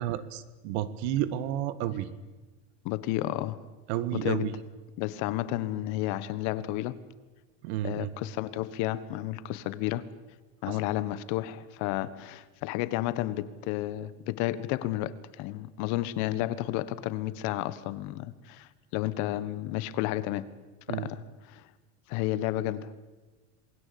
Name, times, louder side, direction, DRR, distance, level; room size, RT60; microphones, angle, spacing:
voice 1, 0.0-2.1 3.9-4.5 7.6-8.1 10.7-10.8 20.9-21.1, right 12 dB, 65° right, 15 dB, 1.8 m, -31 dB
voice 2, 2.8-3.6 4.1-4.5 5.0-7.0 7.8-10.0 10.6-20.5 20.9-21.7 22.1-23.0, left 15 dB, 55° left, 15 dB, 1.5 m, -32 dB
27.5 x 20.5 x 8.6 m, 1.2 s
supercardioid pair, 150°, 35 cm